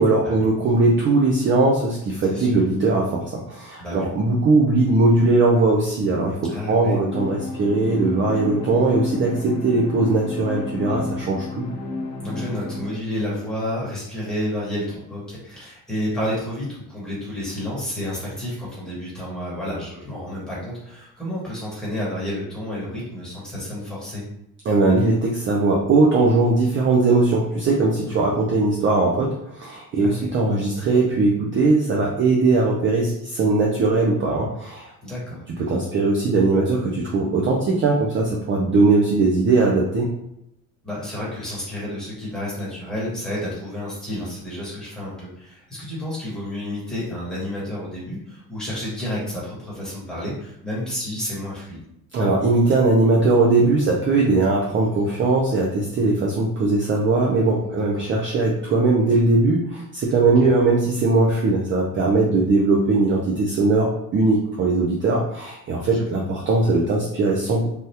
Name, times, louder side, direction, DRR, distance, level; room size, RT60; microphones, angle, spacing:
voice 1, 0.0-11.7 24.7-34.9 35.5-40.1 52.1-67.7, right 3 dB, 35° right, -2 dB, 0.4 m, -20 dB
voice 2, 6.5-7.0 10.9-11.1 12.2-24.2 28.1-28.2 30.0-30.3 35.0-35.4 40.8-51.8 57.7-58.1 60.4-60.5 65.9-66.2, left 1 dB, ahead, -8 dB, 1.2 m, -30 dB
sound 1, 7.1-13.0, left 3 dB, 80° left, 0.7 m, -31 dB
3.4 x 2.3 x 2.7 m, 0.80 s
cardioid pair, 160°, 37 cm